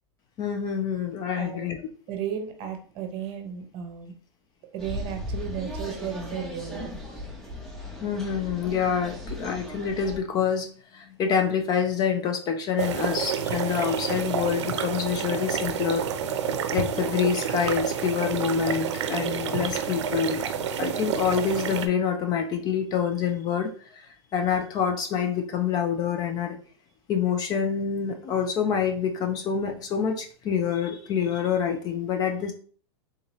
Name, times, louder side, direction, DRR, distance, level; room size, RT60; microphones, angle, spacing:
voice 1, 0.4-1.8 8.0-16.1 16.7-20.4 20.8-26.6 27.1-32.5, left 7 dB, 30° left, 5 dB, 0.4 m, -27 dB
voice 2, 1.4-1.7 2.1-4.1 4.7-6.9, right 8 dB, 40° right, 5 dB, 0.8 m, -34 dB
sound 1, 4.8-10.2, left 1 dB, 5° left, 0.8 m, -37 dB
sound 2, 12.8-21.9, right 7 dB, 90° right, 0.5 m, -29 dB
3.6 x 2.7 x 3.0 m, 0.43 s
supercardioid pair, 135°, 15 cm